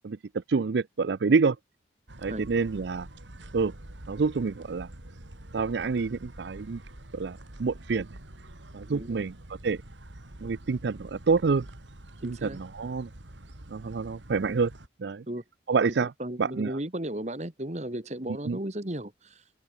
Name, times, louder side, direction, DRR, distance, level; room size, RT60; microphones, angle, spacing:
voice 1, 0.0-1.6 2.2-3.1 3.5-3.7 4.1-4.9 5.5-6.8 7.1-8.1 8.7-9.3 9.6-9.8 10.4-11.7 12.2-13.1 13.7-14.7 15.0-15.2 15.7-16.1 16.4-16.8 18.5-18.6, right 4 dB, 70° right, 0.5 m, -27 dB
sound 1, 2.1-14.9, right 1 dB, 85° right, 2.6 m, -46 dB
voice 2, 8.9-9.2 12.2-12.6 15.3-15.4 16.0-19.5, right 1 dB, 40° right, 2.1 m, -35 dB
open air
head